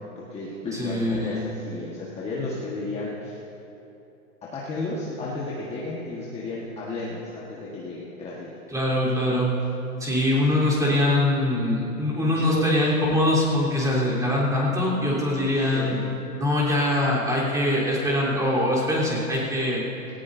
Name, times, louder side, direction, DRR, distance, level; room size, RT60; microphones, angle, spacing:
voice 1, 0.0-3.4 4.4-8.5 12.2-12.7 15.6-16.0, left 2 dB, 15° left, -5 dB, 1.5 m, -33 dB
voice 2, 0.7-1.5 8.7-9.5 10.0-16.0 16.4-19.8, left 1 dB, 10° right, -7 dB, 3.7 m, -23 dB
18.5 x 18.0 x 2.7 m, 2.8 s
hypercardioid pair, 135°, 43 cm